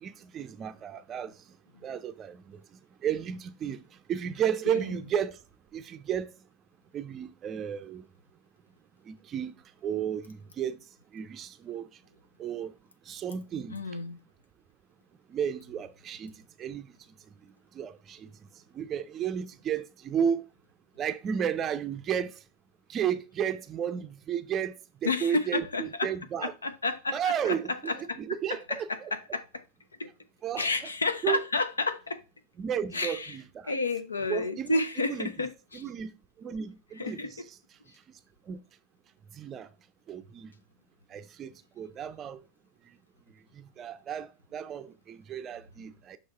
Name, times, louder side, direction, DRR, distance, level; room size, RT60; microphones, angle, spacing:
voice 1, 0.0-1.3 1.8-2.6 3.0-3.8 4.1-5.4 5.7-6.3 6.9-8.0 9.1-9.6 9.8-10.8 11.1-11.9 12.4-12.8 13.1-13.8 15.3-16.3 16.6-16.9 17.7-18.3 18.7-20.4 21.0-22.4 22.9-26.5 27.1-29.1 30.4-30.7 31.2-31.4 32.6-33.7 34.3-34.8 35.1-35.3 35.7-36.1 36.4-37.4 38.1-38.2 38.5-38.6 39.3-39.7 40.1-40.5 41.1-42.4 43.5-46.2, right 8 dB, 25° right, 0.5 m, -33 dB
voice 2, 13.7-14.2 25.0-26.1 26.4-28.2 28.5-29.6 30.0-30.1 30.6-32.2 32.9-33.4 33.6-35.8 37.0-37.3, left 3 dB, 75° left, 0.6 m, -31 dB
6.3 x 3.0 x 5.4 m
figure-of-eight pair, 90°, 0 cm